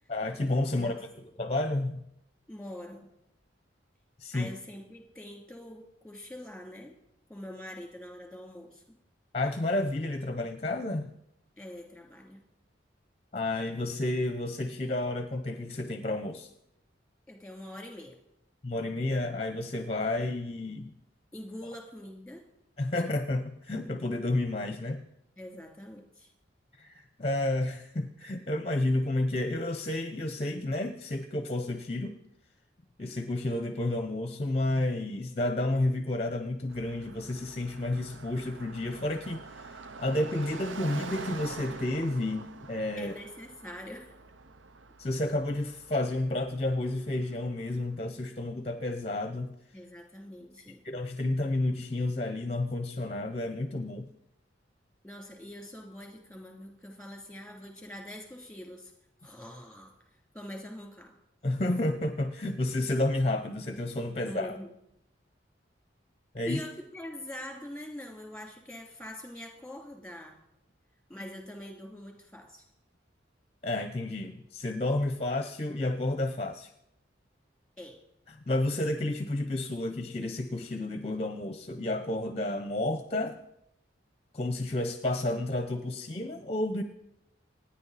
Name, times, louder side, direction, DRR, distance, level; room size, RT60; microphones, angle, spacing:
voice 1, 0.1-1.0 1.4-2.0 4.2-4.5 9.3-11.1 13.3-16.5 18.6-20.9 22.8-25.0 26.8-32.2 33.0-43.1 45.0-49.6 50.8-54.1 61.4-64.6 66.3-66.6 73.6-76.7 78.3-83.4 84.3-86.8, left 2 dB, 30° left, 8 dB, 0.7 m, -31 dB
voice 2, 0.7-1.1 2.5-3.1 4.3-6.9 7.3-9.0 11.6-12.4 17.3-18.2 21.3-22.4 25.4-26.3 43.0-44.1 49.7-50.8 55.0-58.9 59.2-61.2 64.2-64.7 66.4-70.4 71.1-72.6 77.8-78.0, left 1 dB, 5° left, 2 dB, 2.8 m, -44 dB
Car passing by, 36.7-47.8, right 4 dB, 90° right, 0.7 m, -45 dB
27.0 x 9.8 x 4.1 m, 0.81 s
head